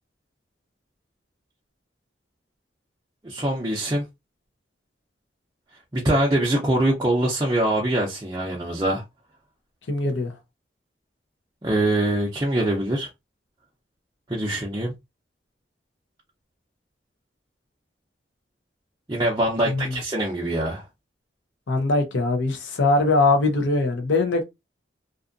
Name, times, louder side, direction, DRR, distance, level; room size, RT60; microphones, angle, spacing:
voice 1, 3.2-4.0 5.9-9.0 11.6-13.1 14.3-14.9 19.1-20.8, right 1 dB, 20° right, 0.5 m, -23 dB
voice 2, 9.9-10.3 19.6-19.9 21.7-24.4, left 2 dB, 80° left, 0.7 m, -21 dB
2.6 x 2.4 x 2.5 m
head